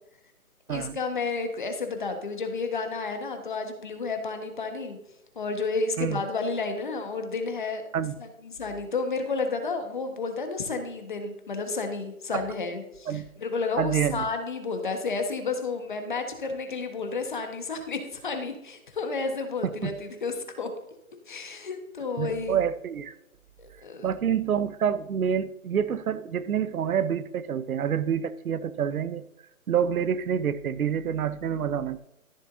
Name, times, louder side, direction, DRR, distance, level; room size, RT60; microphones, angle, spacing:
voice 1, 0.7-5.0 5.3-7.8 8.2-13.1 13.4-20.7 21.3-22.6 23.6-24.1, left 4 dB, 35° left, 1.2 m, -31 dB
voice 2, 13.8-14.3 19.6-19.9 22.2-23.1 24.0-29.3 29.7-32.0, right 8 dB, 75° right, 0.7 m, -27 dB
13.5 x 6.8 x 2.6 m
hypercardioid pair, 170°, 43 cm